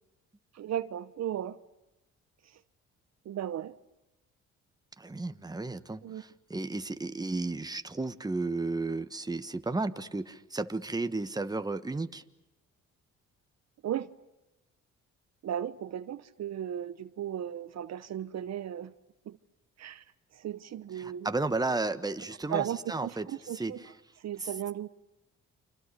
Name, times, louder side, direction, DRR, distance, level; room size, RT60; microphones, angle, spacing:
voice 1, 0.5-1.6 2.4-2.6 3.2-3.7 6.0-6.2 13.8-14.1 15.4-18.9 19.3-19.4 19.8-20.0 20.3-21.3 22.5-23.8 24.2-24.9, right 10 dB, 60° right, 0.9 m, -35 dB
voice 2, 5.0-12.2 21.0-23.3 23.5-23.9 24.4-24.5, right 3 dB, 15° right, 1.4 m, -33 dB
29.5 x 26.0 x 6.8 m
cardioid pair, 90°, 30 cm